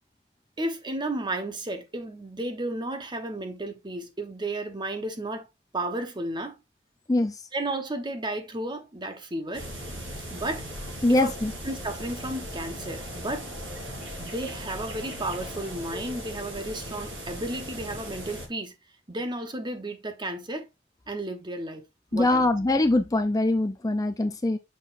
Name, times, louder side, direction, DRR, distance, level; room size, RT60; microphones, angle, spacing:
voice 1, 0.6-5.5 5.7-6.6 7.5-9.7 10.3-10.7 11.1-11.3 11.6-13.5 14.2-18.7 19.1-20.7 21.1-21.8 22.1-22.4, right 1 dB, 25° right, 1.0 m, -33 dB
sound 1, 9.5-18.5, equal, 90° right, 4.0 m, -38 dB
voice 2, 11.0-11.5 22.1-24.6, left 2 dB, 20° left, 0.5 m, -23 dB
6.4 x 5.9 x 2.5 m
head